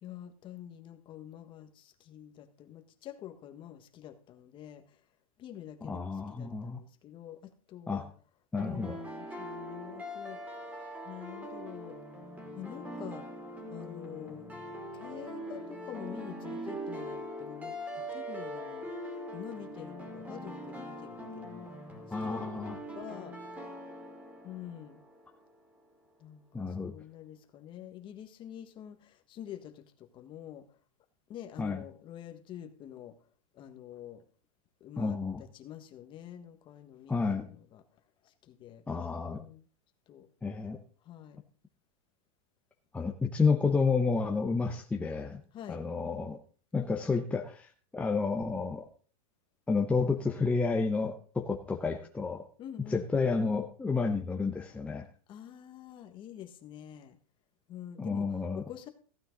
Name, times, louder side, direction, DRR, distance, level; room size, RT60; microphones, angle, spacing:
voice 1, 0.0-5.0 5.4-8.1 8.6-10.8 11.0-12.0 12.6-13.3 13.7-14.5 14.9-18.9 19.3-21.7 22.2-22.4 22.9-23.4 24.4-25.0 26.2-30.7 31.3-33.1 33.5-34.2 34.8-37.8 38.2-38.8 39.3-39.6 40.1-40.3 41.0-41.4 45.5-45.8 52.6-53.1 55.3-57.2 57.7-58.9, left 11 dB, 25° left, 7 dB, 1.4 m, -47 dB
voice 2, 5.8-6.8 7.9-8.0 8.5-9.0 22.1-22.8 26.5-26.9 31.6-31.8 35.0-35.4 37.1-37.5 38.9-39.4 40.4-40.8 42.9-45.4 45.7-46.4 46.7-48.9 49.7-52.4 52.9-55.0 58.0-58.6, left 4 dB, 5° left, 2 dB, 0.8 m, -30 dB
sound 1, 8.6-25.5, equal, 10° right, 2.9 m, -42 dB
15.5 x 8.9 x 3.9 m, 0.41 s
supercardioid pair, 150°, 18 cm